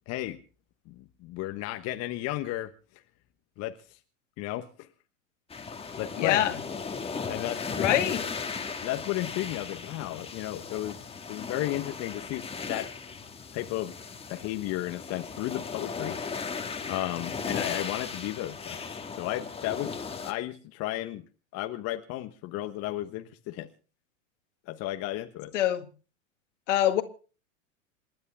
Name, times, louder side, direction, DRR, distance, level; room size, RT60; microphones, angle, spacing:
voice 1, 0.1-0.4 0.9-2.7 3.6-4.0 4.4-4.9 6.0-6.4 7.3-8.0 8.8-11.0 11.3-12.9 13.5-14.0 14.3-16.2 16.8-19.9 20.2-21.2 21.5-23.7 24.7-25.5, left 15 dB, 40° left, 1.3 m, -34 dB
sound 1, 5.5-20.3, left 5 dB, 15° left, 1.7 m, -37 dB
voice 2, 6.2-6.6 7.8-8.2 25.5-25.9 26.7-27.0, left 12 dB, 65° left, 2.1 m, -24 dB
28.0 x 10.5 x 3.5 m
hypercardioid pair, 95°, 40 cm